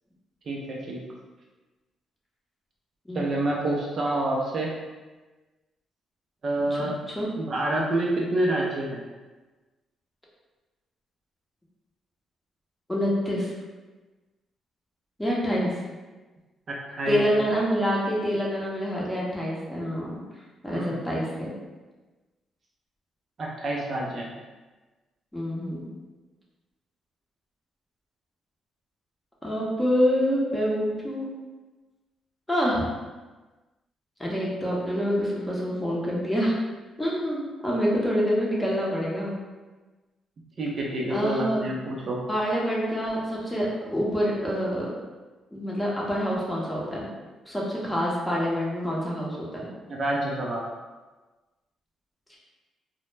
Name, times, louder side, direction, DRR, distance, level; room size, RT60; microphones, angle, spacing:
voice 1, 0.5-1.0 3.1-4.7 6.4-7.0 7.4-9.0 16.7-17.2 20.7-20.9 23.4-24.3 40.6-42.2 49.9-50.7, right 1 dB, 50° right, -2 dB, 0.4 m, -28 dB
voice 2, 6.7-7.3 12.9-13.5 15.2-15.8 17.1-20.2 20.6-21.5 25.3-25.8 29.4-31.3 32.5-32.9 34.2-36.6 37.0-39.4 41.1-41.7 42.3-44.9 45.5-47.1 47.5-49.7, equal, 10° left, -5 dB, 0.7 m, -26 dB
2.0 x 2.0 x 3.1 m, 1.2 s
cardioid pair, 90°, 0 cm